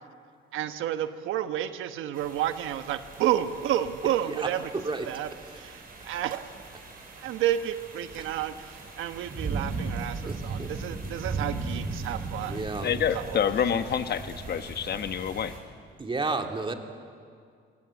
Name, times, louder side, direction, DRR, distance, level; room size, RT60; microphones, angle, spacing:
voice 1, 0.5-4.6 5.1-5.3 5.6-6.5 7.2-12.6 13.1-13.4, right 11 dB, 90° right, 9 dB, 1.2 m, -30 dB
sound 1, 2.1-15.6, right 3 dB, 45° right, 6.1 m, -38 dB
voice 2, 4.0-4.5 4.7-5.1 5.5-5.6 10.2-10.7 12.5-12.9 16.0-16.7, right 3 dB, 25° right, 4 dB, 2.4 m, -32 dB
voice 3, 12.8-15.5, left 8 dB, 55° left, 10 dB, 1.1 m, -27 dB
26.0 x 19.0 x 8.2 m, 2.2 s
cardioid pair, 90°, 20 cm